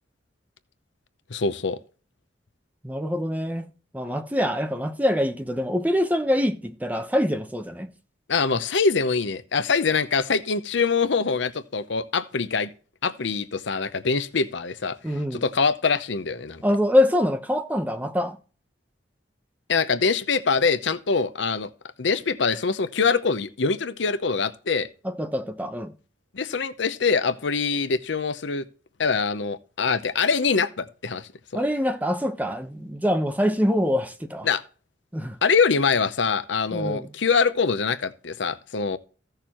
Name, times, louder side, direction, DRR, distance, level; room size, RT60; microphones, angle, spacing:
voice 1, 1.3-1.8 8.3-12.7 13.0-15.0 15.3-16.6 19.7-21.7 22.0-24.9 26.3-28.6 29.0-31.6 34.4-34.6 35.4-39.0, left 5 dB, 65° left, 0.7 m, -24 dB
voice 2, 2.8-3.7 3.9-7.9 15.0-15.4 16.6-18.4 25.0-25.9 31.5-34.5 35.1-35.4 36.7-37.0, left 1 dB, 10° right, 0.9 m, -24 dB
15.0 x 6.6 x 3.0 m
head